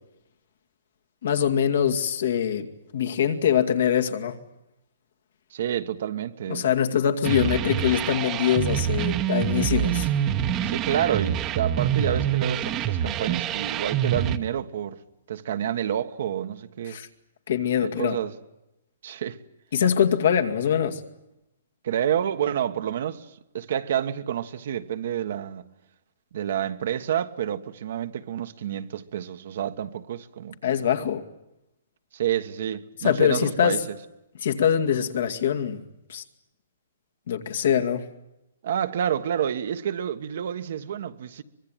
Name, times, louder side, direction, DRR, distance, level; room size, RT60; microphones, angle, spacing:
voice 1, 1.2-2.7 2.9-4.4 6.5-10.1 16.9-17.1 17.5-18.2 19.7-21.0 30.6-31.2 33.0-33.8 34.4-35.8 36.1-36.2 37.3-38.1, left 8 dB, 70° left, 2.3 m, -23 dB
voice 2, 5.5-6.7 10.6-15.0 15.3-17.0 17.8-18.3 19.0-19.4 21.8-25.7 26.3-30.6 32.1-33.8 38.6-41.4, right 9 dB, 60° right, 1.4 m, -29 dB
sound 1, 7.2-14.4, right 10 dB, 25° right, 1.1 m, -26 dB
24.5 x 21.5 x 9.1 m
hypercardioid pair, 150°, 0 cm